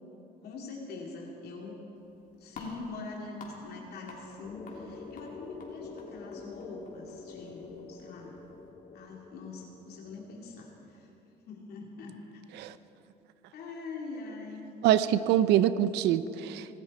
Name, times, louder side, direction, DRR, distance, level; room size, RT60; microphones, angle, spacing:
voice 1, 0.4-1.8 2.4-7.6 7.9-8.4 8.9-11.1 11.5-12.4 13.5-14.7, left 3 dB, 70° left, -1 dB, 2.8 m, -43 dB
sound 1, 1.9-8.7, left 2 dB, 55° left, 3.4 m, -52 dB
sound 2, 4.4-10.9, left 4 dB, 30° left, 1.1 m, -47 dB
voice 2, 14.8-16.7, right 11 dB, 85° right, 14 dB, 0.7 m, -24 dB
25.0 x 13.0 x 4.4 m, 2.9 s
cardioid pair, 110°, 17 cm